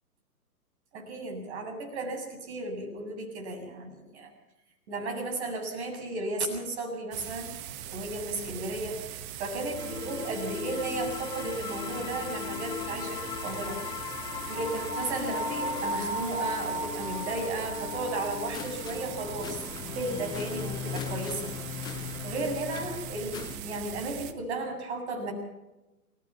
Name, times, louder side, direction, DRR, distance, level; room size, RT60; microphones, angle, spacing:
voice 1, 0.9-4.3 4.9-7.5 7.9-13.8 14.5-19.6 19.9-21.5 22.0-25.3, right 2 dB, 45° right, 3 dB, 7.9 m, -34 dB
sound 1, 7.1-24.3, right 10 dB, 30° right, 1.6 m, -41 dB
sound 2, 9.7-23.6, left 11 dB, 10° left, 0.7 m, -39 dB
sound 3, 14.5-19.6, equal, 80° left, 3.7 m, -36 dB
29.0 x 16.0 x 5.9 m, 1.0 s
figure-of-eight pair, 125°, 46 cm